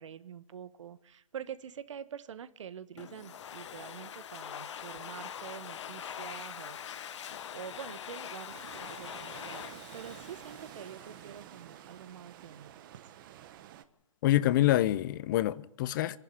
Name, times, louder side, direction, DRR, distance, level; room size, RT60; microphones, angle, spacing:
voice 1, 0.0-6.8 7.5-13.1, right 8 dB, 60° right, 1.4 m, -46 dB
Domestic sounds home sounds, 3.0-11.4, left 9 dB, 60° left, 1.3 m, -43 dB
sound 1, 8.5-13.9, right 11 dB, 40° right, 1.3 m, -50 dB
voice 2, 14.2-16.2, left 14 dB, 35° left, 0.8 m, -26 dB
25.0 x 11.5 x 9.8 m
hypercardioid pair, 145°, 17 cm